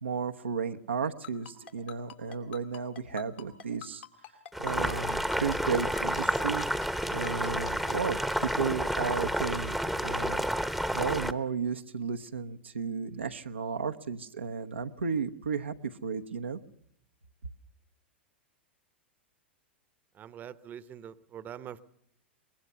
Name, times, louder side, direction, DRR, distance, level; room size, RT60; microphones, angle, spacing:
voice 1, 0.0-4.0 4.6-6.7 7.1-10.4 10.9-16.6, right 5 dB, 85° right, 5 dB, 1.0 m, -33 dB
Ringtone, 1.2-7.9, left 9 dB, 70° left, 3.5 m, -44 dB
Boiling, 4.5-11.3, equal, ahead, 1.0 m, -30 dB
voice 2, 20.1-21.8, right 9 dB, 30° right, 15 dB, 0.9 m, -44 dB
23.5 x 20.5 x 6.8 m, 0.69 s
figure-of-eight pair, 100°, 6 cm